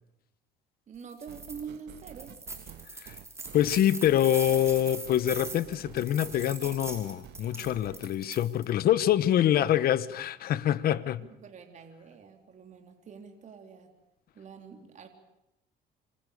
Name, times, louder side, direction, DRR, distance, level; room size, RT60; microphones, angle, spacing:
voice 1, 0.9-2.4 7.9-8.0 10.5-10.7 11.2-13.9 14.3-15.1, right 6 dB, 45° right, 3.7 m, -46 dB
sound 1, 1.1-1.6 2.0-8.7, right 2 dB, 15° right, 5.3 m, -41 dB
sound 2, 1.3-8.0, right 11 dB, 75° right, 1.8 m, -50 dB
voice 2, 3.5-11.2, left 11 dB, 60° left, 1.2 m, -25 dB
27.0 x 26.5 x 6.6 m
cardioid pair, 110°, 17 cm